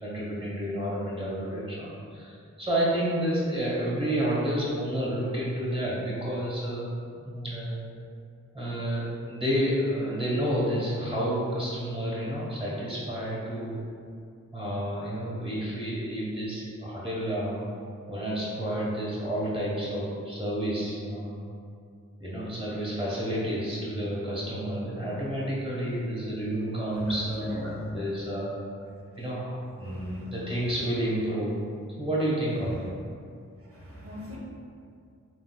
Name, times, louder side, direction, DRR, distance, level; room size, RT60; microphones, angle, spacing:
voice 1, 0.0-7.8 8.5-13.8 14.5-17.6 18.1-21.3 22.2-28.5 29.2-31.6 32.0-32.9, equal, 15° right, -7 dB, 1.2 m, -30 dB
voice 2, 26.9-27.8 29.8-30.3 33.7-34.4, left 1 dB, 45° right, -5 dB, 0.7 m, -40 dB
3.6 x 2.7 x 2.3 m, 2.3 s
cardioid pair, 50°, 32 cm